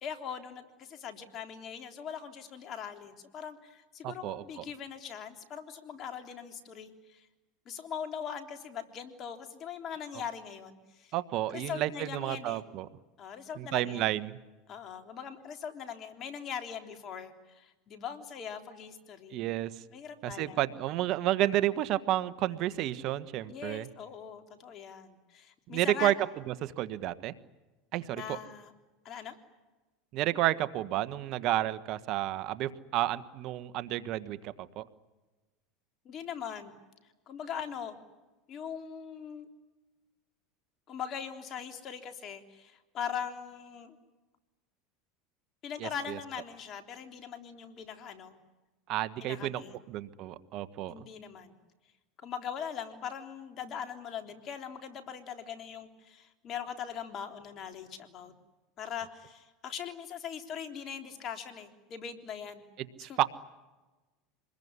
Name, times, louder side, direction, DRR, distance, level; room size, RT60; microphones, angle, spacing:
voice 1, 0.0-7.3 7.7-11.1 11.5-12.6 13.2-14.1 14.7-19.4 19.9-20.6 23.5-26.1 28.1-28.7 29.0-29.4 36.1-36.7 37.3-38.0 38.5-39.5 40.9-44.0 45.6-48.3 49.2-49.8 50.9-51.5 52.2-58.3 58.8-62.6 63.0-63.2, left 7 dB, 45° left, 6 dB, 3.6 m, -41 dB
voice 2, 4.0-4.6 11.1-12.9 13.6-14.4 19.3-19.7 20.2-23.9 25.7-26.1 26.5-27.3 27.9-28.4 30.1-34.8 45.8-46.2 48.9-49.6 49.9-50.9 63.0-63.3, right 14 dB, 55° right, 14 dB, 1.3 m, -31 dB
26.5 x 21.0 x 9.7 m, 1.2 s
hypercardioid pair, 100°, 0 cm